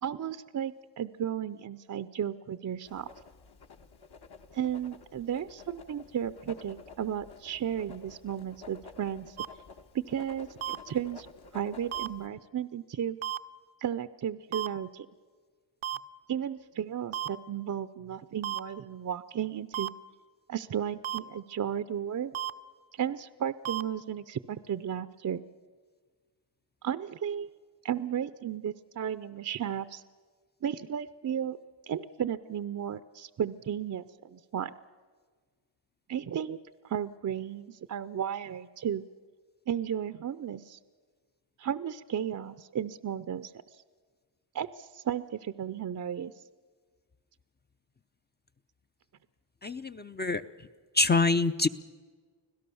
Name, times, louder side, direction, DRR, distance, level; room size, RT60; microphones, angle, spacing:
voice 1, 0.0-3.1 4.5-9.4 9.9-11.3 11.5-13.2 13.8-15.1 16.3-19.9 20.5-22.3 23.0-25.4 26.8-27.5 27.8-30.0 30.6-31.6 31.8-34.7 36.1-36.6 36.8-39.0 39.7-40.8 41.6-43.5 44.5-46.3, right 9 dB, 40° right, 13 dB, 0.6 m, -34 dB
Writing, 2.8-12.3, left 5 dB, 55° left, 1.4 m, -52 dB
sound 1, 9.4-9.5 10.6-10.8 11.9-12.1 13.2-13.4 14.5-14.7 15.8-16.0 17.1-17.3 18.4-18.6 19.7-19.9 21.0-21.2 22.3-22.5 23.6-23.8, right 12 dB, 80° right, 0.8 m, -32 dB
voice 2, 49.6-50.4 50.9-51.7, left 3 dB, 20° left, 9 dB, 0.6 m, -25 dB
25.0 x 17.0 x 7.0 m, 1.5 s
cardioid pair, 100°, 46 cm